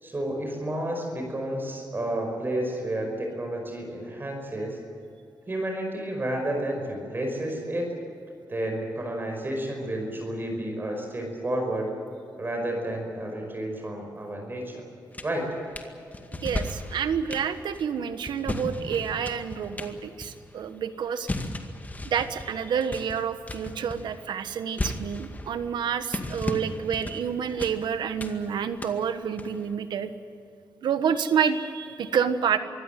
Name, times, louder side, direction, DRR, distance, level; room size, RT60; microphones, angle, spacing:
voice 1, 0.0-4.8 5.5-7.9 8.5-11.9 12.4-14.9 15.2-15.5, right 1 dB, 30° right, 2 dB, 5.2 m, -31 dB
sound 1, 15.1-15.9 16.1-20.8 21.0-29.7, left 2 dB, 20° left, 2.1 m, -36 dB
voice 2, 16.4-21.3 22.0-30.1 30.8-32.6, right 7 dB, 85° right, 10 dB, 1.3 m, -28 dB
24.5 x 16.0 x 9.2 m, 2.6 s
cardioid pair, 95°, 7 cm